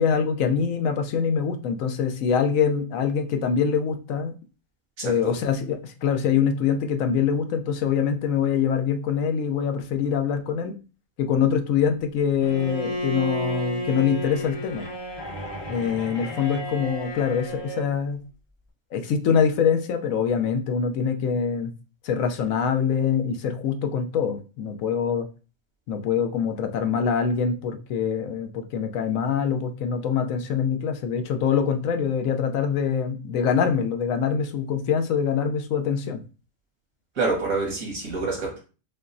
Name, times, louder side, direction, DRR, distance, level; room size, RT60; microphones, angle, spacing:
voice 1, 0.0-4.3 5.0-10.7 11.2-14.9 15.7-18.2 18.9-21.7 22.0-25.3 25.9-36.2, left 7 dB, 80° left, 7 dB, 1.0 m, -24 dB
voice 2, 5.0-5.3 37.2-38.6, right 3 dB, 85° right, -2 dB, 1.9 m, -27 dB
Bowed string instrument, 12.4-17.9, equal, 25° left, 0.6 m, -32 dB
5.4 x 2.0 x 2.6 m, 0.33 s
omnidirectional pair, 1.4 m